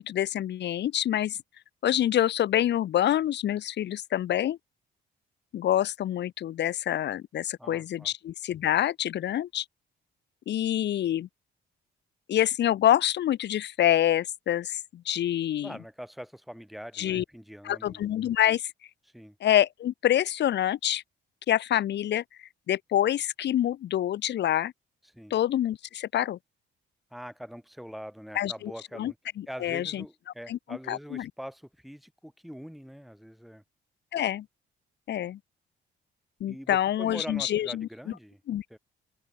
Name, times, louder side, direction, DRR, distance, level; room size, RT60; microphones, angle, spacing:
voice 1, 0.0-1.4 1.8-4.6 5.5-9.6 10.5-11.3 12.3-15.7 17.0-17.2 17.6-18.7 19.4-21.0 21.5-22.2 22.7-24.7 25.3-26.4 28.4-28.7 29.0-30.0 30.5-30.6 30.9-31.3 34.1-34.5 35.1-35.4 36.4-37.9 38.5-38.6, left 11 dB, 60° left, 0.8 m, -26 dB
voice 2, 7.6-8.1 15.6-18.0 19.1-19.4 25.0-25.4 27.1-29.2 29.5-33.6 36.5-38.4 38.7-38.8, equal, ahead, 2.6 m, -43 dB
open air
cardioid pair, 90°, 20 cm